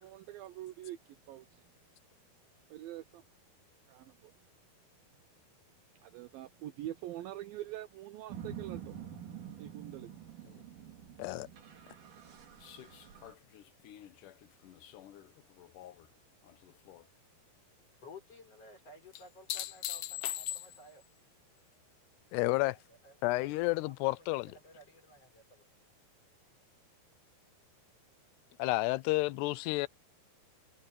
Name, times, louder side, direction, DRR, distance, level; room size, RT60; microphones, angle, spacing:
voice 1, 0.0-1.6 2.7-3.2 3.9-4.3 6.0-9.0 9.6-10.1, right 14 dB, 75° right, 2.3 m, -44 dB
sound 1, 8.3-13.3, right 8 dB, 55° right, 4.0 m, -47 dB
sound 2, 12.6-16.1 16.4-17.0 19.1-21.0 23.6-23.7, left 13 dB, 65° left, 2.3 m, -42 dB
voice 2, 18.0-21.0 22.4-23.2 23.6-25.6, left 2 dB, 35° left, 6.1 m, -55 dB
voice 3, 22.3-22.8 23.2-24.5 28.6-29.9, left 21 dB, 85° left, 2.7 m, -30 dB
omnidirectional pair, 4.7 m